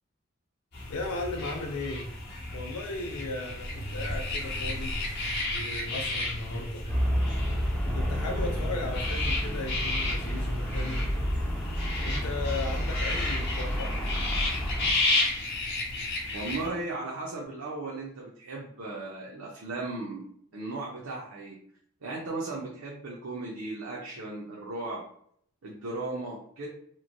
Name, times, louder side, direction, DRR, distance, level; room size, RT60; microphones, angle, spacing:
sound 1, 0.7-16.7, left 2 dB, 50° left, 0.8 m, -33 dB
voice 1, 0.9-2.1 2.5-5.0 5.5-6.8 7.9-11.1 12.0-13.9, left 3 dB, 80° left, 2 dB, 0.4 m, -36 dB
sound 2, 3.6-9.2, right 2 dB, 90° right, 1.4 m, -43 dB
Traffic noise roadway noise, 6.9-14.9, equal, ahead, 0.4 m, -30 dB
voice 2, 16.3-21.6 22.0-25.0 25.6-26.7, right 2 dB, 70° right, -4 dB, 0.6 m, -36 dB
3.0 x 2.1 x 2.5 m, 0.66 s
head